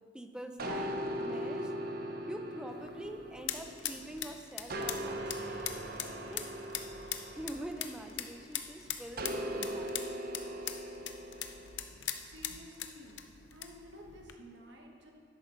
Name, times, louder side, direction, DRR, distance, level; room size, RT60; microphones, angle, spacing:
voice 1, 0.1-1.7 2.3-5.8 6.3-6.5 7.3-10.2, right 1 dB, 5° right, 6 dB, 0.6 m, -45 dB
sound 1, 0.6-4.2 4.7-8.4 9.2-11.8, right 1 dB, 55° right, 0.8 m, -39 dB
sound 2, 2.7-14.3, left 10 dB, 70° left, 0.7 m, -42 dB
voice 2, 12.2-13.2 13.5-15.1, equal, 70° right, 1 dB, 1.5 m, -52 dB
12.5 x 10.5 x 4.0 m, 2.3 s
head